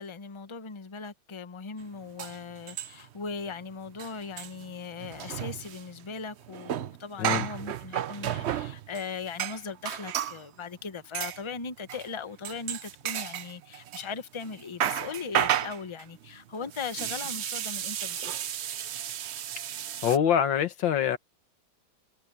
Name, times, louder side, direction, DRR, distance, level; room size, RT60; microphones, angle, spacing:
voice 1, 0.0-18.3, left 5 dB, 25° left, 0.6 m, -39 dB
sound 1, 1.8-1.9 2.2-3.2 3.5-3.6 3.9-10.4 11.1-11.4 11.9-12.1 12.4-14.1 14.4-20.2, right 10 dB, 90° right, 0.5 m, -33 dB
voice 2, 20.0-21.2, left 9 dB, 90° left, 1.9 m, -24 dB
omnidirectional pair, 2.0 m